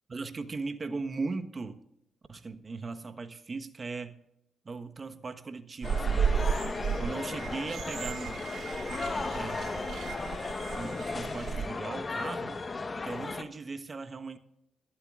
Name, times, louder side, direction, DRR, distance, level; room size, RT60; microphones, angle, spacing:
voice 1, 0.1-1.8 2.3-4.2 4.6-6.6 7.0-8.4 9.3-10.2 10.7-12.6 13.0-14.4, right 3 dB, 40° right, 8 dB, 1.2 m, -38 dB
sound 1, 5.8-13.4, left 3 dB, 35° left, 1.2 m, -35 dB
sound 2, 5.8-11.7, right 7 dB, 65° right, 0.5 m, -33 dB
21.5 x 12.5 x 2.5 m, 0.78 s
supercardioid pair, 55°, 0 cm